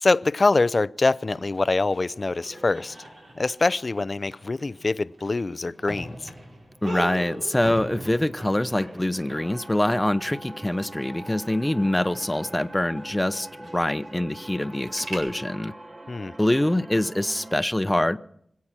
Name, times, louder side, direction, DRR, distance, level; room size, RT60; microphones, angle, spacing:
voice 1, 0.0-3.0 3.3-6.2 16.1-16.3, left 3 dB, 50° left, 0.5 m, -24 dB
sound 1, 1.3-15.2, right 1 dB, 90° right, 5.3 m, -41 dB
voice 2, 6.8-15.7 16.4-18.2, left 1 dB, 15° left, 0.8 m, -24 dB
sound 2, 9.3-17.6, right 1 dB, 45° right, 1.9 m, -43 dB
25.5 x 8.5 x 5.9 m
cardioid pair, 50°, 0 cm